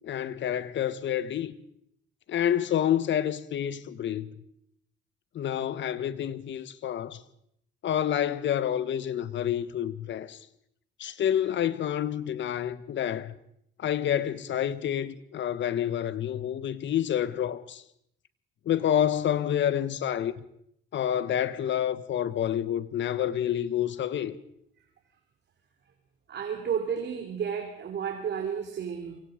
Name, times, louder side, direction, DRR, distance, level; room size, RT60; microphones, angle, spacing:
voice 1, 0.0-1.5 2.3-4.3 5.3-7.2 7.8-10.4 11.0-13.3 13.8-17.8 18.6-20.3 20.9-24.3, left 10 dB, 70° left, 1.5 m, -28 dB
voice 2, 26.3-29.2, right 7 dB, 60° right, 3.4 m, -32 dB
28.5 x 25.0 x 5.2 m
cardioid pair, 90°, 20 cm